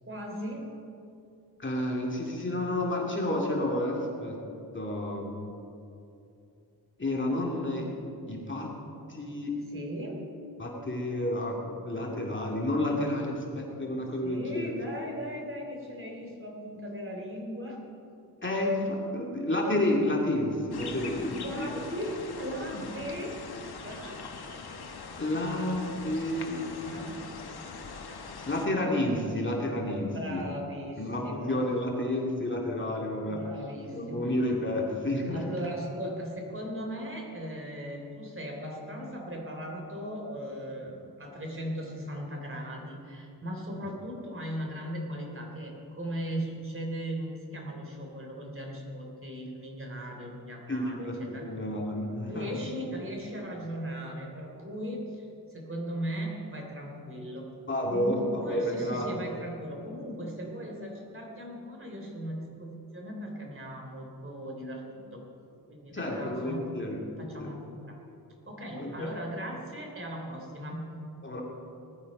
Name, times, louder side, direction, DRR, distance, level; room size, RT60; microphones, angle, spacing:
voice 1, 0.0-0.7 9.7-10.3 14.2-17.8 21.2-23.4 23.8-24.2 26.8-27.3 30.1-31.6 33.3-34.2 35.3-51.5 52.3-57.5 57.9-65.2 65.7-66.7 67.2-68.0 68.5-70.9, equal, 30° right, 0 dB, 3.4 m, -38 dB
voice 2, 1.6-4.4 4.7-5.3 7.0-7.9 8.3-8.7 9.1-9.6 10.6-14.7 18.4-21.8 22.7-22.9 25.2-26.9 28.5-30.5 31.0-33.4 33.9-35.5 50.7-52.6 57.7-59.1 65.9-67.5 68.7-69.2 71.2-71.4, left 1 dB, 30° left, -2 dB, 2.3 m, -30 dB
sound 1, 20.7-28.7, left 4 dB, 70° left, 1.4 m, -42 dB
20.0 x 12.5 x 5.4 m, 2.6 s
wide cardioid pair, 130°, 39 cm